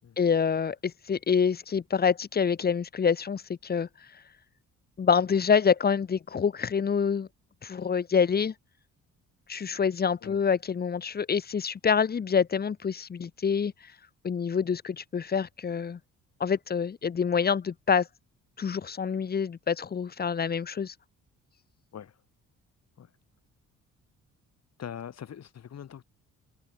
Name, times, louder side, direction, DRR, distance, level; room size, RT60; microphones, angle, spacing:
voice 1, 0.2-3.9 5.0-7.3 7.6-8.5 9.5-13.7 14.2-16.0 16.4-18.1 18.6-20.9, left 6 dB, 30° left, 0.9 m, -26 dB
voice 2, 24.8-26.0, left 9 dB, 60° left, 7.4 m, -42 dB
cardioid pair, 90°, 30 cm